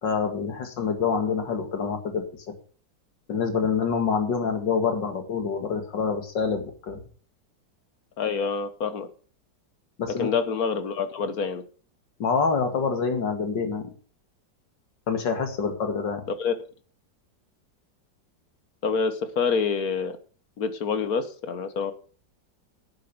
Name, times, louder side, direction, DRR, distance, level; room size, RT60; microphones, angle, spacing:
voice 1, 0.0-2.2 3.3-7.0 10.0-10.3 12.2-13.9 15.1-16.2, left 5 dB, 75° left, 6 dB, 2.6 m, -26 dB
voice 2, 8.2-9.1 10.2-11.6 16.4-16.5 18.8-20.2 20.6-21.9, left 5 dB, 55° left, 11 dB, 1.5 m, -26 dB
11.0 x 7.7 x 6.8 m, 0.41 s
omnidirectional pair, 2.0 m